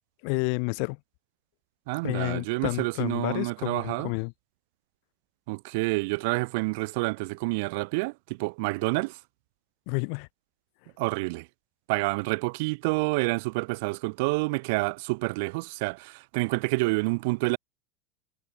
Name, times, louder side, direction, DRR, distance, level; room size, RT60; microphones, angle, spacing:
voice 1, 0.2-1.0 2.0-4.3 9.9-10.3, left 40 dB or more, 60° left, 2.6 m, -30 dB
voice 2, 1.9-4.1 5.5-9.1 11.0-11.5 11.9-17.6, right 27 dB, 65° right, 1.6 m, -28 dB
hypercardioid pair, 95°, 0 cm